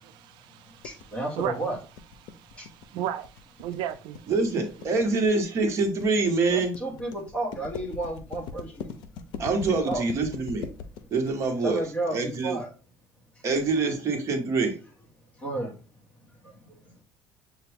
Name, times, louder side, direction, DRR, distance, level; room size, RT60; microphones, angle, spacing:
voice 1, 0.2-1.6 2.2-4.3, right 11 dB, 75° right, 0.4 m, -35 dB
sound 1, 0.8-12.4, left 6 dB, 80° left, 0.6 m, -41 dB
voice 2, 0.8-1.8 6.5-8.7 9.8-10.0 11.6-12.7 15.4-15.7, right 2 dB, 15° left, 1.2 m, -31 dB
voice 3, 4.3-6.7 9.4-10.7 11.1-11.8 12.1-12.6 13.4-14.8, right 3 dB, 35° right, 0.9 m, -25 dB
6.8 x 2.3 x 3.4 m
cardioid pair, 170°, 8 cm